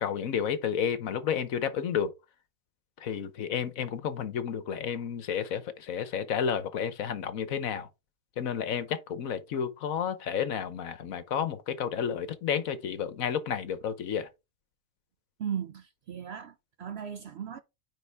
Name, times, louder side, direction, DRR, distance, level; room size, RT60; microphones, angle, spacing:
voice 1, 0.0-2.1 3.0-7.9 8.4-14.3, left 8 dB, 70° left, 1.3 m, -31 dB
voice 2, 15.4-17.6, right 8 dB, 65° right, 0.7 m, -37 dB
9.7 x 3.9 x 3.4 m
omnidirectional pair, 1.5 m